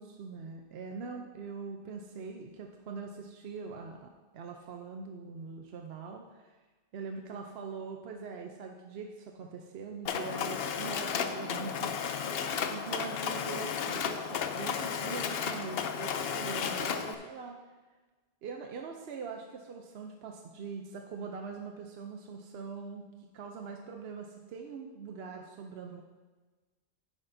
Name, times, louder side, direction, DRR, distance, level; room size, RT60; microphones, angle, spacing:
voice 1, 0.0-6.6 6.9-17.6 18.4-26.0, right 5 dB, 75° right, 3 dB, 0.9 m, -43 dB
Mechanisms, 10.1-17.2, left 7 dB, 70° left, 0.8 m, -33 dB
9.8 x 9.8 x 2.7 m, 1.3 s
omnidirectional pair, 1.1 m